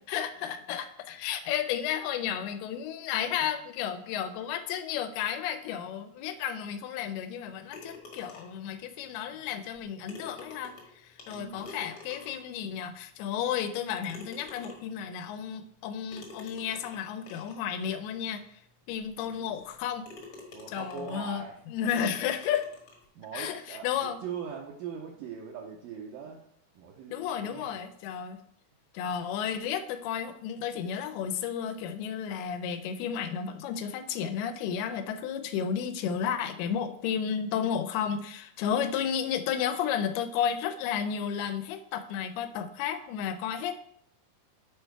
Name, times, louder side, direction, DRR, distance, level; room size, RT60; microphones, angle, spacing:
voice 1, 0.1-18.4 18.9-20.0 20.7-22.7 23.3-24.2 27.1-28.4 28.9-43.8, left 8 dB, 85° left, 9 dB, 2.6 m, -32 dB
sound 1, 7.7-8.7 9.7-9.8 10.1-12.6 13.2-13.3 14.1-15.0 16.1-17.6 18.3-18.4 18.9-19.0 19.6-19.8 20.0-21.4 21.9-23.0, left 3 dB, 55° left, 1.5 m, -48 dB
voice 2, 11.3-11.7 19.2-19.6 20.5-21.6 23.2-26.4 26.8-27.8, right 7 dB, 75° right, -1 dB, 2.1 m, -41 dB
7.1 x 4.4 x 4.6 m, 0.67 s
omnidirectional pair, 4.5 m